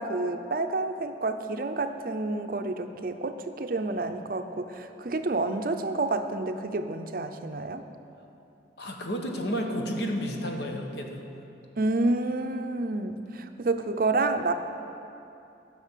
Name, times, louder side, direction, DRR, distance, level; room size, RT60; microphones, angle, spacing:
voice 1, 0.0-7.8 11.8-14.5, right 2 dB, 50° right, 8 dB, 0.5 m, -29 dB
voice 2, 8.8-11.2, equal, 65° left, 2 dB, 1.2 m, -31 dB
11.5 x 6.2 x 7.4 m, 2.8 s
head